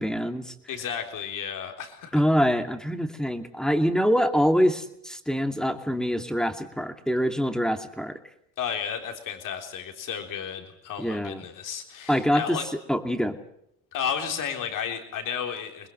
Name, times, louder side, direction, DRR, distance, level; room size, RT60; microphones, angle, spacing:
voice 1, 0.0-0.5 2.1-8.2 11.0-11.4 12.1-12.6 12.9-13.4, equal, ahead, 6 dB, 2.5 m, -25 dB
voice 2, 0.7-2.2 8.6-12.7 13.9-15.9, left 8 dB, 60° left, 4 dB, 3.9 m, -33 dB
24.0 x 20.5 x 7.8 m, 0.75 s
hypercardioid pair, 60°, 36 cm